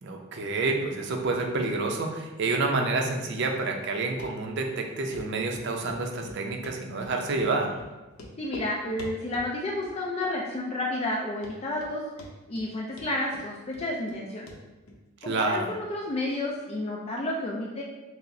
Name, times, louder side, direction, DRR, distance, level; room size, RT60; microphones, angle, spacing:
voice 1, 0.0-7.8 15.2-15.7, right 3 dB, 55° right, 2 dB, 0.5 m, -28 dB
Run, 4.2-4.3 4.6-4.7 5.1-5.2 5.5-7.1 7.4-7.5 7.8-7.9 8.1-8.7 9.0-9.5 9.8-10.3 10.5-10.6 11.1-11.2 11.4-11.9 12.2-12.7 13.0-14.2 14.5-14.6 14.9-15.0, left 1 dB, 90° left, 0.6 m, -44 dB
voice 2, 8.4-12.0 12.5-14.5 15.2-17.8, left 1 dB, 30° left, -2 dB, 0.3 m, -31 dB
5.5 x 2.0 x 2.6 m, 1.1 s
head